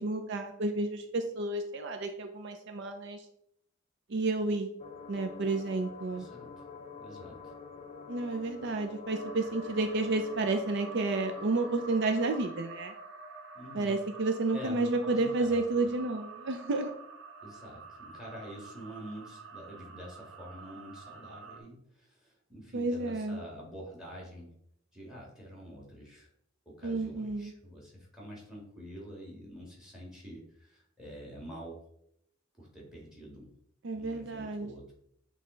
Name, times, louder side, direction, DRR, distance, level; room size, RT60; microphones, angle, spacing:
voice 1, 0.0-3.3 4.1-4.7 5.1-6.3 8.1-12.9 13.7-16.9 22.7-23.4 26.8-27.5 33.8-34.7, right 3 dB, 60° right, 6 dB, 0.5 m, -31 dB
sound 1, 4.8-12.4, left 4 dB, 35° left, 0.5 m, -46 dB
voice 2, 6.1-6.5 7.0-7.5 13.5-14.0 14.5-15.6 17.4-24.5 24.9-26.3 26.8-31.8 32.6-33.5 33.9-34.9, equal, 5° right, -2 dB, 2.1 m, -47 dB
sound 2, 9.1-21.6, right 3 dB, 80° right, 0.9 m, -48 dB
7.4 x 3.3 x 3.9 m, 0.71 s
head